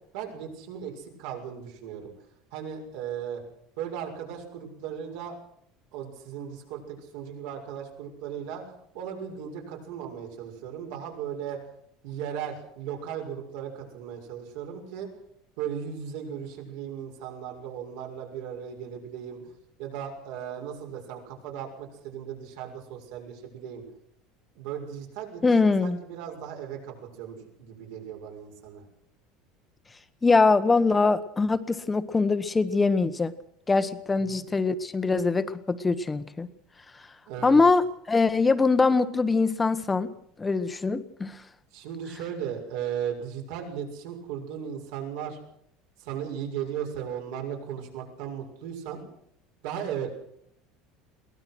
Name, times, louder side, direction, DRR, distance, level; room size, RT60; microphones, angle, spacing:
voice 1, 0.1-2.1 2.5-3.4 3.8-5.4 5.9-11.6 12.0-15.1 15.6-19.5 19.8-23.8 24.5-28.8 34.1-34.4 37.3-37.6 41.7-45.4 46.0-49.0 49.6-50.1, right 8 dB, 75° right, 2 dB, 6.6 m, -36 dB
voice 2, 25.4-26.0 30.2-33.3 33.7-36.5 37.4-40.1 40.4-41.4, left 4 dB, 15° left, 12 dB, 1.2 m, -23 dB
22.5 x 18.5 x 6.4 m, 0.70 s
cardioid pair, 145°, 0 cm